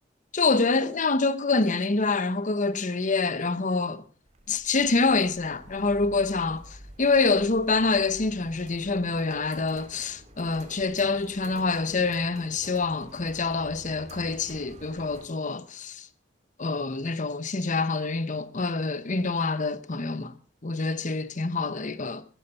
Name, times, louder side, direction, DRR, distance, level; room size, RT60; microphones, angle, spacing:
voice 1, 0.3-4.0 4.5-16.1 16.6-20.3 20.6-22.2, left 3 dB, 45° left, 0.9 m, -26 dB
sound 1, 4.3-15.3, right 1 dB, 40° right, 2.4 m, -49 dB
15.0 x 12.5 x 5.6 m
head